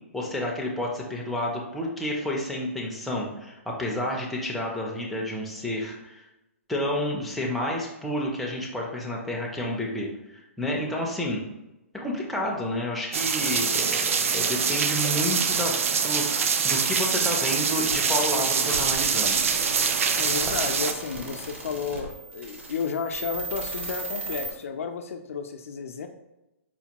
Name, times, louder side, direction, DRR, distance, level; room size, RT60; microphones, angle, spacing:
voice 1, 0.1-6.3 6.7-11.4 11.9-15.8 16.0-19.4, left 1 dB, ahead, -3 dB, 0.4 m, -30 dB
sound 1, 13.1-20.9, right 6 dB, 70° right, 0.4 m, -24 dB
sound 2, 17.8-24.5, right 3 dB, 55° right, 0.9 m, -37 dB
voice 2, 20.1-26.1, left 6 dB, 75° left, 6 dB, 0.4 m, -32 dB
4.2 x 2.2 x 2.9 m, 0.94 s
hypercardioid pair, 155°, 8 cm